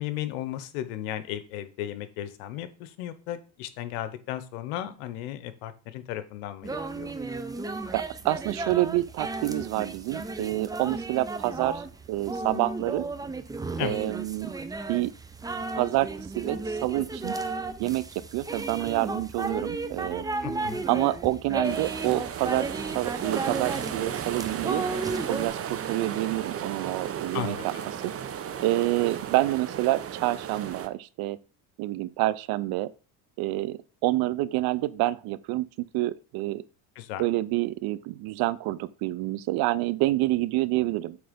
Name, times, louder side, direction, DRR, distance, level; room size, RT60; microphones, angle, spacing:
voice 1, 0.0-7.1 13.8-14.0 20.4-20.8 27.3-27.9 37.0-37.3, left 12 dB, 90° left, 0.9 m, -35 dB
sound 1, 6.6-25.5, right 3 dB, 10° right, 0.5 m, -34 dB
voice 2, 7.9-13.0 13.8-14.5 14.9-15.1 15.7-17.4 17.8-18.1 18.3-20.2 20.9-22.7 22.9-24.8 25.3-27.7 28.0-28.1 28.6-31.4 31.8-32.9 33.4-36.6 37.2-41.2, right 17 dB, 65° right, 0.6 m, -28 dB
sound 2, 21.6-30.9, right 9 dB, 35° right, 0.8 m, -35 dB
7.9 x 3.4 x 5.1 m
supercardioid pair, 110°, 42 cm